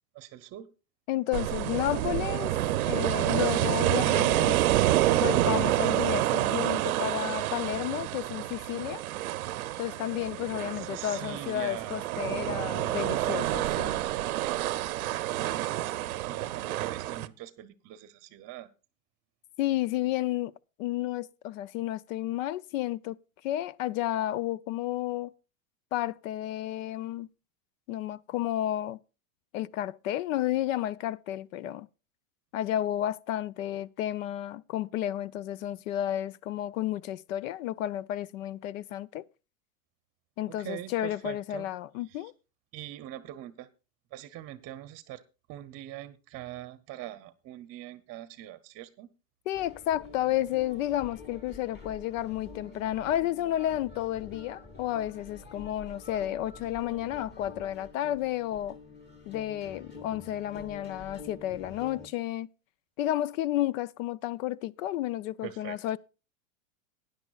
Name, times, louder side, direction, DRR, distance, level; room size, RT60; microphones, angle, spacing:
voice 1, 0.1-0.7 10.7-12.0 14.1-15.0 15.4-18.7 40.5-41.7 42.0-42.3 42.7-43.7 44.1-45.2 45.5-49.1 65.4-65.8, right 14 dB, 35° right, 0.8 m, -43 dB
voice 2, 1.1-2.5 2.9-4.6 5.0-9.0 9.8-14.0 19.6-20.5 20.8-23.2 23.4-25.3 25.9-27.3 27.9-29.0 29.5-31.9 32.5-39.3 40.4-42.3 49.5-58.8 59.3-62.5 63.0-66.0, left 13 dB, 70° left, 0.6 m, -32 dB
sound 1, 1.3-17.3, right 15 dB, 85° right, 0.7 m, -28 dB
sound 2, 49.5-62.1, left 3 dB, 25° left, 2.5 m, -48 dB
18.0 x 10.5 x 2.4 m
supercardioid pair, 125°, 42 cm